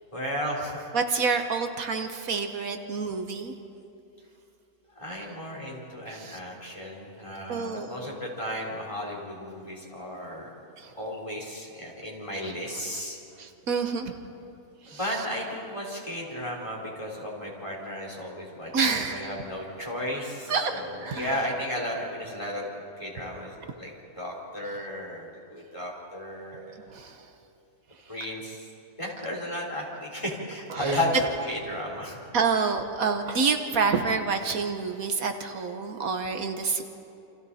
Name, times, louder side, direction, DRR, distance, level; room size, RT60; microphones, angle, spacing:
voice 1, 0.1-0.9 5.0-10.5 11.0-13.2 14.9-22.7 23.0-23.9 24.2-26.8 28.1-28.7 29.0-32.2, equal, 20° left, -3 dB, 4.1 m, -34 dB
voice 2, 0.9-3.5 6.1-6.4 7.5-8.2 10.8-10.9 13.4-14.1 14.8-15.0 18.7-19.2 20.5-21.3 26.9-27.3 30.7-31.0 32.3-36.8, right 5 dB, 70° right, 6 dB, 1.5 m, -28 dB
29.0 x 26.5 x 4.2 m, 2.8 s
omnidirectional pair, 1.5 m